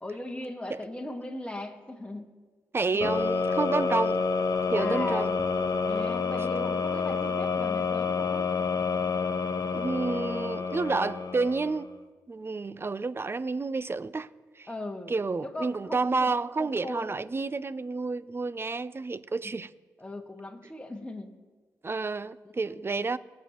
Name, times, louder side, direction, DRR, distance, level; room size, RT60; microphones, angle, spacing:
voice 1, 0.0-2.3 2.9-3.1 4.7-8.5 14.7-16.3 16.6-17.1 19.4-19.6 20.0-21.3 22.4-22.8, left 1 dB, 15° left, 1.6 m, -39 dB
voice 2, 2.7-4.2 4.7-5.3 9.7-11.9 12.3-14.3 14.6-14.7 15.1-19.7 21.8-23.2, right 3 dB, 35° right, 0.5 m, -30 dB
sound 1, 3.0-11.9, left 5 dB, 55° left, 1.0 m, -28 dB
20.5 x 7.4 x 3.0 m
supercardioid pair, 50°, 7 cm